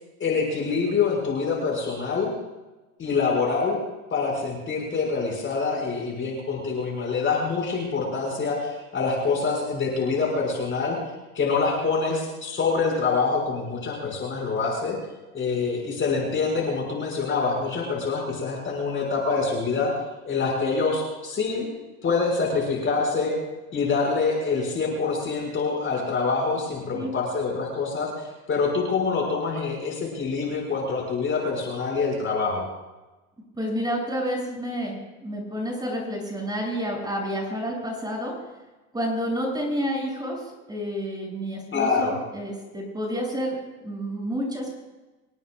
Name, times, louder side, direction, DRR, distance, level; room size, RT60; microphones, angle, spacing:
voice 1, 0.2-2.3 3.0-3.8 4.1-11.0 11.3-15.0 15.3-19.9 20.2-21.7 22.0-23.4 23.7-32.7 41.7-42.2, left 4 dB, 25° left, -1 dB, 6.1 m, -25 dB
voice 2, 33.5-38.3 38.9-40.4 40.7-43.6 43.8-44.8, equal, 10° right, -1 dB, 7.3 m, -29 dB
27.0 x 18.0 x 2.5 m, 1.1 s
hypercardioid pair, 105°, 43 cm